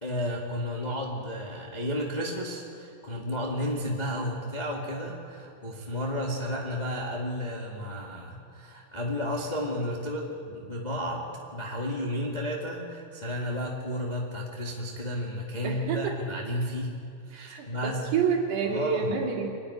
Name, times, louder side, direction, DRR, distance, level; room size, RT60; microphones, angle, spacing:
voice 1, 0.0-11.2 11.5-16.9 17.3-18.1 18.6-19.1, equal, 25° left, -2 dB, 0.9 m, -32 dB
voice 2, 15.6-16.1 17.3-19.5, right 6 dB, 80° right, 0 dB, 4.5 m, -28 dB
25.0 x 10.5 x 10.0 m, 2.5 s
omnidirectional pair, 4.7 m